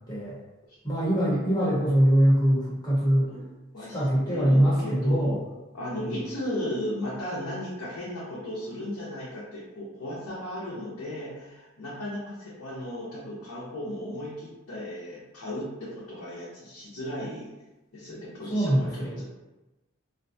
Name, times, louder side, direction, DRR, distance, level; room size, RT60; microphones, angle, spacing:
voice 1, 0.8-3.3 3.8-5.4 18.5-19.1, equal, 20° left, -8 dB, 0.9 m, -23 dB
voice 2, 4.3-5.4 5.7-17.5 17.9-19.2, left 1 dB, 85° left, -8 dB, 0.7 m, -36 dB
2.6 x 2.2 x 2.6 m, 1.0 s
head